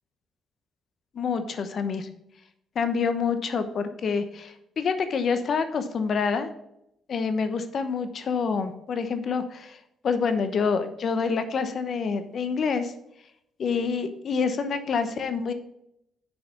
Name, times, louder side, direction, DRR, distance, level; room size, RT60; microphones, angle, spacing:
voice 1, 1.1-2.1 2.7-6.5 7.1-9.8 10.0-12.9 13.6-15.5, left 5 dB, 55° left, 9 dB, 0.8 m, -27 dB
6.6 x 4.8 x 6.8 m, 0.80 s
cardioid pair, 90°, 0 cm